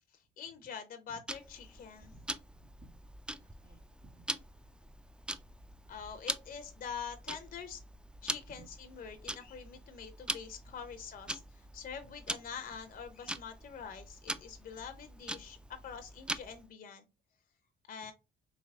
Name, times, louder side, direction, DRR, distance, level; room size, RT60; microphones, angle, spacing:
voice 1, 0.4-2.1 5.9-7.8 8.2-17.1 17.9-18.1, left 7 dB, 45° left, 7 dB, 0.6 m, -45 dB
Tick-tock, 1.3-16.7, right 1 dB, 5° right, 0.3 m, -43 dB
voice 2, 2.0-4.4 8.6-8.7, right 4 dB, 45° right, 5 dB, 1.4 m, -60 dB
3.4 x 3.0 x 3.4 m, 0.28 s
cardioid pair, 90°, 20 cm